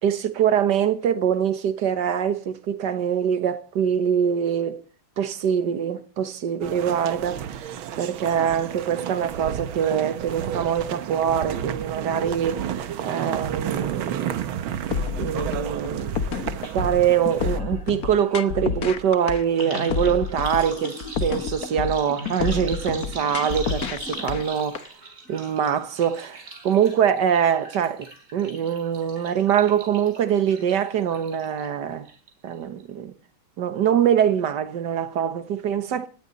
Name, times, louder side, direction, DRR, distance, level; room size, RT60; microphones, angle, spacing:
voice 1, 0.0-4.8 5.2-14.4 15.2-16.1 16.6-24.9 25.3-32.1 32.4-33.1 33.6-36.1, right 8 dB, 55° right, 1.7 m, -24 dB
sound 1, 6.6-17.6, right 9 dB, 75° right, 1.8 m, -32 dB
sound 2, 14.9-24.8, left 6 dB, 50° left, 1.5 m, -29 dB
sound 3, 16.6-16.7 17.0-31.7 32.1-32.5 32.8-32.9, right 1 dB, 35° right, 6.1 m, -40 dB
19.0 x 17.0 x 4.1 m
omnidirectional pair, 2.3 m